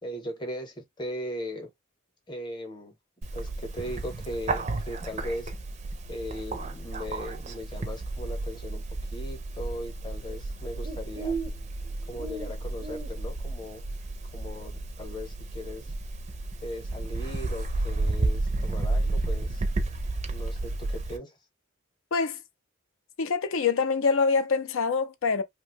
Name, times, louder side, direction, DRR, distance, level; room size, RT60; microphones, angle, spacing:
voice 1, 0.0-1.7 2.3-2.9 3.3-5.5 6.1-8.8 9.1-11.4 12.1-13.8 14.3-15.9 16.6-19.6 20.2-21.4, equal, 20° left, 0.8 m, -38 dB
Bird, 3.2-21.2, right 2 dB, 35° right, 0.5 m, -32 dB
voice 2, 23.2-25.4, left 5 dB, 70° left, 0.5 m, -25 dB
2.7 x 2.2 x 3.5 m
head